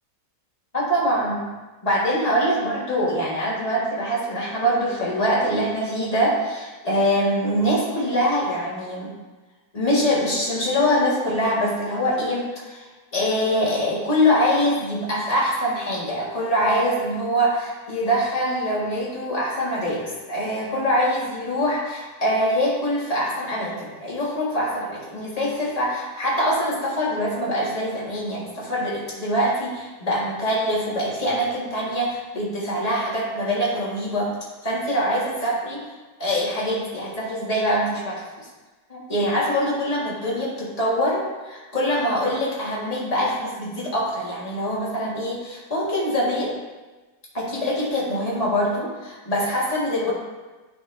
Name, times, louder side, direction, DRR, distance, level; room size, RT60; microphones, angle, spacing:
voice 1, 0.7-1.5 1.8-9.1 9.7-34.3 34.6-35.9 36.2-38.3 38.9-46.5 47.3-50.1, equal, 20° left, -6 dB, 1.9 m, -24 dB
9.8 x 6.0 x 2.7 m, 1.2 s
omnidirectional pair, 1.9 m